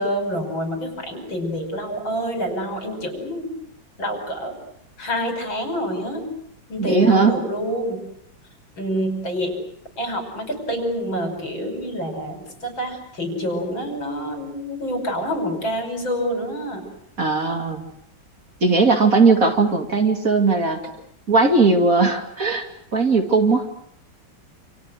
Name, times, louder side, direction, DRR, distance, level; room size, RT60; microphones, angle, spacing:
voice 1, 0.0-3.5 4.0-4.5 5.0-6.3 6.7-8.0 8.8-9.6 10.0-16.9, equal, 75° left, 5 dB, 6.3 m, -27 dB
voice 2, 6.8-7.4 17.2-17.8 18.6-20.8 21.3-22.7 22.9-23.7, right 4 dB, 45° right, 4 dB, 2.8 m, -18 dB
29.0 x 27.5 x 6.5 m, 0.72 s
omnidirectional pair, 2.1 m